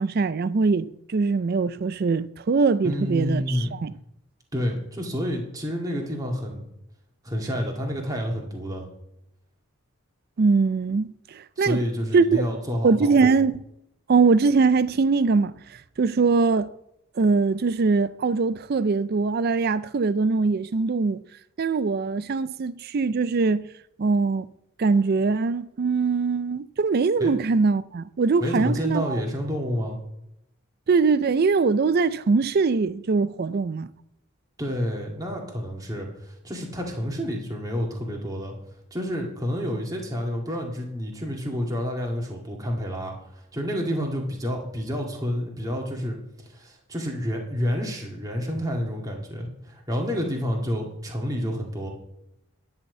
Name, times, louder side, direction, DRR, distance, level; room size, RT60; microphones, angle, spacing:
voice 1, 0.0-3.9 10.4-11.8 12.1-12.4 12.8-13.5 14.1-15.5 16.0-16.7 17.2-21.2 21.6-23.7 24.0-24.5 24.8-29.2 30.9-33.9, right 4 dB, 45° right, 0.4 m, -22 dB
voice 2, 2.8-3.8 4.5-6.6 7.2-8.8 11.6-13.3 27.2-27.3 28.4-30.0 34.6-38.5 38.9-46.2 46.5-51.9, equal, 15° right, 2.0 m, -29 dB
10.5 x 5.8 x 8.0 m
head